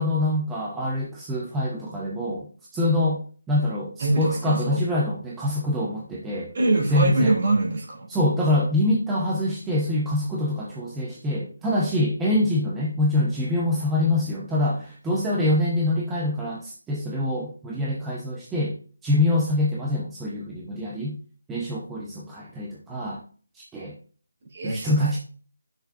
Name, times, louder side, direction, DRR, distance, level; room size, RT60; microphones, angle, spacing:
voice 1, 0.0-6.5 6.9-7.4 8.1-18.8 19.0-21.2 21.5-23.2 23.5-24.0 24.6-25.2, left 1 dB, 5° right, -4 dB, 0.7 m, -25 dB
voice 2, 4.0-4.8 6.5-8.1 24.5-25.1, right 2 dB, 35° right, -1 dB, 2.9 m, -24 dB
9.6 x 6.4 x 2.6 m, 0.41 s
figure-of-eight pair, 170°, 0 cm